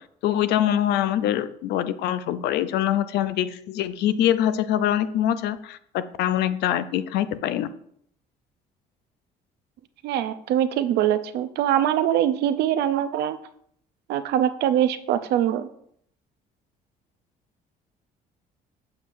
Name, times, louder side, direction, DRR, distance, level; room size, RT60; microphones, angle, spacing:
voice 1, 0.2-7.7, left 11 dB, 80° left, 13 dB, 0.5 m, -24 dB
voice 2, 10.0-13.4 14.1-15.7, right 11 dB, 75° right, 11 dB, 0.5 m, -23 dB
7.2 x 6.4 x 2.5 m, 0.68 s
cardioid pair, 110°, 17 cm